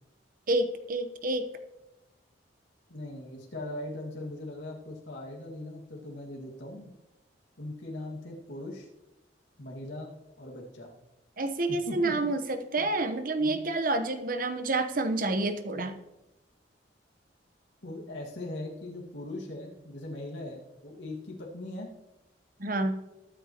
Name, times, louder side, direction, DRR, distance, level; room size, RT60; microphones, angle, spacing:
voice 1, 0.5-1.5 11.4-16.0 22.6-23.0, right 2 dB, 50° right, 8 dB, 1.0 m, -28 dB
voice 2, 2.9-6.9 7.6-8.9 9.6-10.9 11.9-12.3 12.8-12.9 13.4-13.7 17.8-21.9, left 1 dB, 85° left, -2 dB, 2.1 m, -40 dB
21.5 x 9.1 x 3.0 m, 0.98 s
head